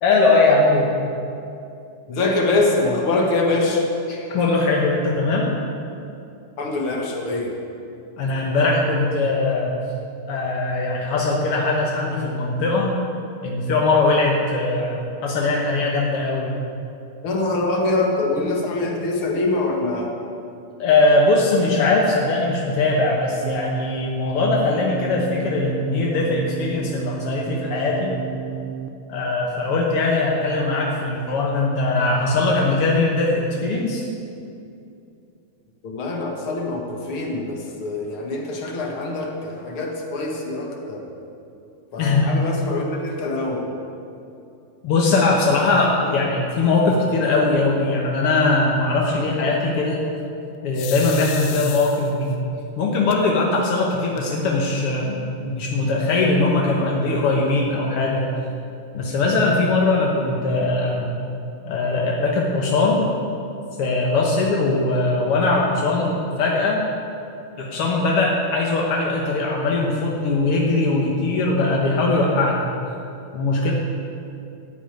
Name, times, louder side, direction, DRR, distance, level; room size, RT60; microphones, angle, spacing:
voice 1, 0.0-1.0 4.1-5.5 8.2-9.8 10.3-12.9 13.4-16.5 20.8-28.1 29.1-34.0 42.0-42.3 44.8-50.0 50.6-52.4 52.8-58.2 58.9-61.1 61.7-63.1 63.8-66.8 67.6-72.6 73.3-73.7, left 3 dB, 65° left, -2 dB, 1.4 m, -20 dB
voice 2, 2.1-3.8 6.6-7.5 17.2-20.1 35.8-41.1 41.9-43.7, left 2 dB, 50° left, 0 dB, 1.8 m, -24 dB
sound 1, 23.4-28.9, right 10 dB, 85° right, 2.3 m, -32 dB
sound 2, 50.7-52.3 53.1-53.2 53.6-53.7 54.0-54.6, left 13 dB, 85° left, 2.5 m, -34 dB
14.0 x 7.0 x 9.1 m, 2.6 s
omnidirectional pair, 4.3 m